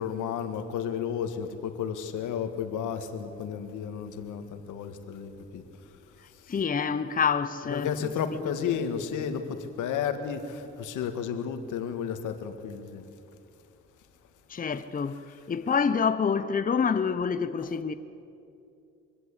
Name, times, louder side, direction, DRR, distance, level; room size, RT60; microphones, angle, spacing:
voice 1, 0.0-5.6 7.6-13.0 17.6-17.7, left 7 dB, 85° left, 1.8 m, -32 dB
voice 2, 6.5-7.9 8.3-8.5 14.5-15.2 15.5-17.9, left 6 dB, 30° left, 0.9 m, -27 dB
23.5 x 16.0 x 8.4 m
cardioid pair, 90°, 30 cm